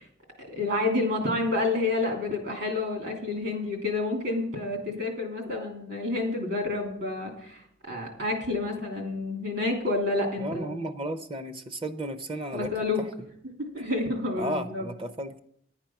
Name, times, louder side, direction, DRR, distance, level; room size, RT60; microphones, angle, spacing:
voice 1, 0.5-10.7 12.5-13.0 13.6-14.9, left 2 dB, 60° right, 3 dB, 2.9 m, -29 dB
voice 2, 10.4-12.7 14.4-15.4, right 1 dB, 30° right, 9 dB, 0.6 m, -33 dB
10.5 x 8.9 x 5.9 m, 0.70 s
head